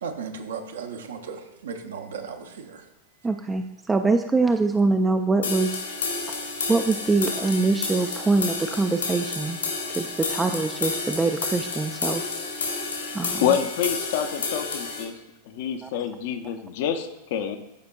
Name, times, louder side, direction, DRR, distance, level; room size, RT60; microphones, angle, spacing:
voice 1, 0.0-2.8, right 6 dB, 65° right, 5 dB, 0.7 m, -36 dB
voice 2, 3.2-5.7 6.7-9.6 9.9-12.2 13.1-13.4 15.8-15.9, right 3 dB, 10° right, 6 dB, 0.3 m, -23 dB
sound 1, 5.4-15.0, left 4 dB, 75° left, 2.1 m, -30 dB
voice 3, 13.4-15.1 15.4-17.6, left 8 dB, 50° left, 9 dB, 0.6 m, -27 dB
12.0 x 5.0 x 2.3 m, 0.93 s
figure-of-eight pair, 90°, 0 cm